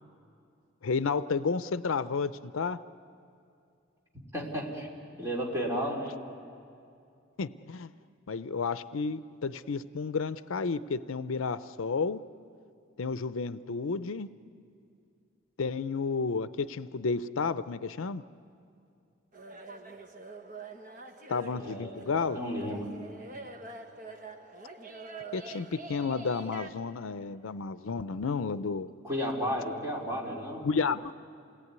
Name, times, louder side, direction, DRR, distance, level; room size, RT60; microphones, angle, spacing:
voice 1, 0.8-2.8 7.4-7.9 8.3-12.2 13.0-14.3 15.6-18.2 21.3-22.4 25.3-28.9 30.6-31.1, left 4 dB, 80° left, 14 dB, 0.5 m, -31 dB
voice 2, 4.3-4.9 5.2-6.2 21.5-22.1 22.3-22.9 29.0-30.7, equal, 15° right, -3 dB, 3.3 m, -33 dB
sound 1, 19.3-26.7, right 3 dB, 40° right, 1.2 m, -45 dB
28.0 x 18.5 x 9.5 m, 2.5 s
head